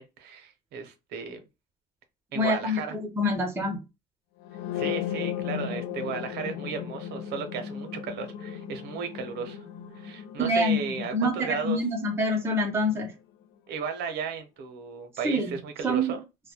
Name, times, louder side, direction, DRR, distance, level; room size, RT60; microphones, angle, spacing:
voice 1, 0.0-1.4 2.3-3.0 4.7-9.6 9.9-11.8 13.7-16.2, right 5 dB, 75° right, 0.6 m, -35 dB
voice 2, 2.3-3.8 10.4-13.1 15.2-15.6 15.8-16.1, equal, 15° right, 0.6 m, -26 dB
sound 1, 4.4-12.3, left 9 dB, 80° left, 0.4 m, -36 dB
2.1 x 2.1 x 2.8 m
cardioid pair, 110°, 17 cm